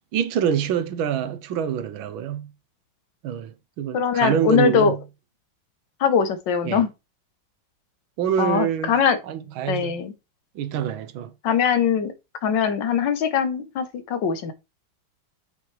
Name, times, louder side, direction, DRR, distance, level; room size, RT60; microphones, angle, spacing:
voice 1, 0.1-2.5 3.2-5.0 6.6-6.8 8.2-8.9 9.3-9.9 10.5-11.3, right 9 dB, 90° right, 1.6 m, -25 dB
voice 2, 3.9-5.0 6.0-6.9 8.4-9.2 9.7-10.1 11.4-12.1 12.4-14.5, left 7 dB, 70° left, 1.6 m, -21 dB
7.6 x 5.7 x 3.2 m
omnidirectional pair, 2.2 m